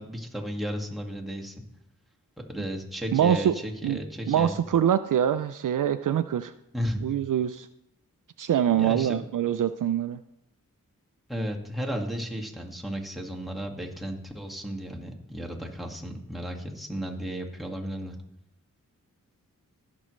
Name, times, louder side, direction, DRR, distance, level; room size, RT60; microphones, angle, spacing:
voice 1, 0.0-1.6 2.4-4.5 6.7-7.2 8.7-9.3 11.3-18.2, equal, ahead, 0 dB, 1.9 m, -34 dB
voice 2, 3.1-3.6 3.8-4.0 4.3-6.5 7.0-7.7 8.4-10.2, right 9 dB, 65° right, 12 dB, 0.5 m, -24 dB
16.0 x 6.3 x 3.2 m, 0.82 s
cardioid pair, 45°, 34 cm